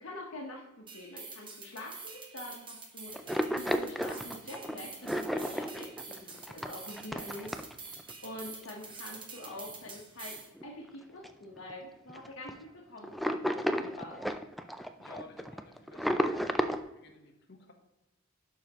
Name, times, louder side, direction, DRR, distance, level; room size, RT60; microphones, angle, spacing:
voice 1, 0.0-3.2 3.5-7.5 7.9-14.2, left 1 dB, 75° left, -2 dB, 1.1 m, -46 dB
sound 1, 0.9-10.5, right 4 dB, 25° right, 1.0 m, -47 dB
sound 2, 3.1-8.1 8.5-8.6 9.4-9.5 9.9-10.0 10.4-10.9 11.2-11.3 11.6-11.7 12.1-12.5 13.0-16.8, equal, ahead, 0.3 m, -33 dB
voice 2, 15.0-16.6 16.9-17.7, left 3 dB, 55° left, 4 dB, 1.1 m, -53 dB
11.0 x 5.0 x 3.0 m, 0.94 s
head